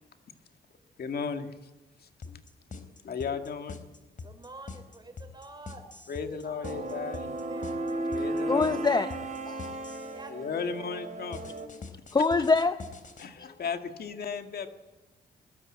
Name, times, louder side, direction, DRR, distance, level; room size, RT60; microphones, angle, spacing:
voice 1, 1.0-1.5 2.3-2.4 2.7-3.8 6.1-7.3 8.1-8.8 10.0-11.6 13.2-14.7, left 6 dB, 65° left, 7 dB, 2.0 m, -35 dB
sound 1, 2.2-10.2 11.3-13.3, left 4 dB, 50° left, 3.6 m, -43 dB
voice 2, 4.2-7.7 10.1-10.9, right 3 dB, 25° right, 7 dB, 5.4 m, -49 dB
sound 2, 6.6-11.7, right 2 dB, 45° right, 3.8 m, -35 dB
voice 3, 8.5-9.1 9.5-9.8 12.1-12.8 13.4-13.5, left 4 dB, 25° left, 9 dB, 1.0 m, -24 dB
22.0 x 20.5 x 8.8 m, 1.2 s
cardioid pair, 90°, 17 cm